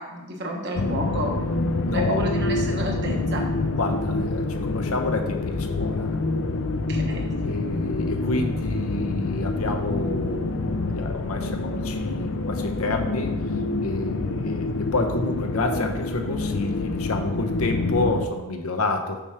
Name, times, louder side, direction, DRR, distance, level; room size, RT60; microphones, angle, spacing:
voice 1, 0.0-1.4 1.9-3.5 6.9-7.3, equal, 50° right, 1 dB, 1.3 m, -31 dB
sound 1, 0.8-18.3, left 2 dB, 60° left, 0.5 m, -27 dB
voice 2, 1.8-2.3 3.8-6.2 7.4-13.4 13.8-19.2, left 2 dB, 75° left, 4 dB, 0.9 m, -29 dB
6.9 x 4.8 x 5.8 m, 1.1 s
head